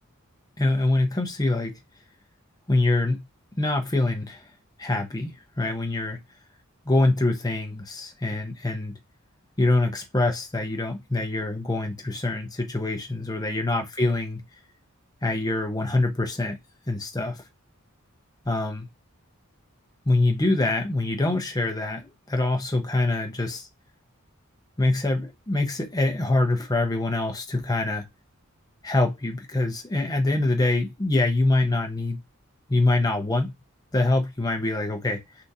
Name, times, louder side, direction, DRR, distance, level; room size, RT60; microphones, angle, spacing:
voice 1, 0.6-1.8 2.7-3.2 3.6-4.4 4.8-6.2 6.8-8.9 9.6-14.4 15.2-16.6 16.9-17.4 18.5-18.9 20.1-23.7 24.8-28.1 28.8-32.2 32.7-33.5 33.9-35.2, left 2 dB, 15° left, 0.6 m, -24 dB
3.4 x 2.7 x 2.7 m
head